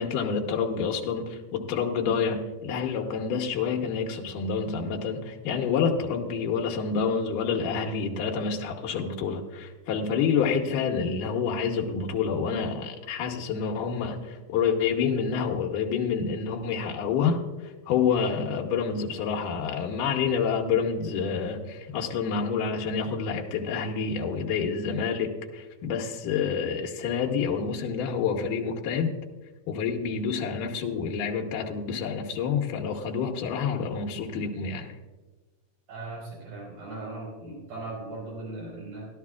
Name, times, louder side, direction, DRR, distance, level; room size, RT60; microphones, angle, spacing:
voice 1, 0.0-29.2 29.7-34.9, left 6 dB, 85° left, 0 dB, 2.5 m, -28 dB
voice 2, 35.9-39.1, right 2 dB, 80° right, -4 dB, 6.0 m, -38 dB
16.0 x 12.0 x 2.3 m, 1.2 s
omnidirectional pair, 3.7 m